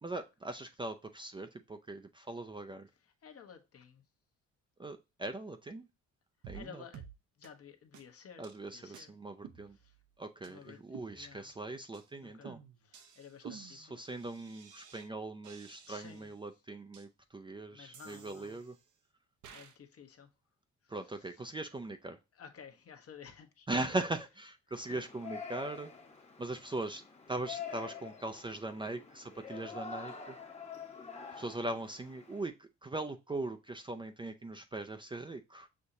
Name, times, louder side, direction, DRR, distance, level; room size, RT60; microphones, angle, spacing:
voice 1, 0.0-2.9 4.8-5.9 6.5-6.8 8.4-9.8 10.2-12.6 13.4-18.8 20.9-22.2 23.7-25.9 26.4-27.0 27.3-30.4 31.3-35.7, right 2 dB, 15° right, 0.4 m, -40 dB
voice 2, 3.2-4.0 6.5-7.0 7.4-9.1 9.8-9.9 10.4-10.8 11.1-11.5 12.2-12.5 12.8-14.0 15.9-16.3 17.7-18.6 19.5-20.3 20.8-20.9 22.4-23.7 24.9-25.0, left 7 dB, 50° left, 1.0 m, -53 dB
sound 1, 6.4-6.7 6.9-7.1 7.4-7.5 7.9-8.0 8.4-8.6 8.9-9.0 9.4-10.1 10.4-10.5 10.9-11.6 11.9-12.1 12.4-15.1 15.4-16.3 16.9-17.0 17.9-18.9 19.4-19.8, right 8 dB, 75° right, 0.8 m, -52 dB
Yell, 24.7-32.4, left 5 dB, 20° left, 0.9 m, -47 dB
6.3 x 2.7 x 2.6 m
cardioid pair, 90°, 30 cm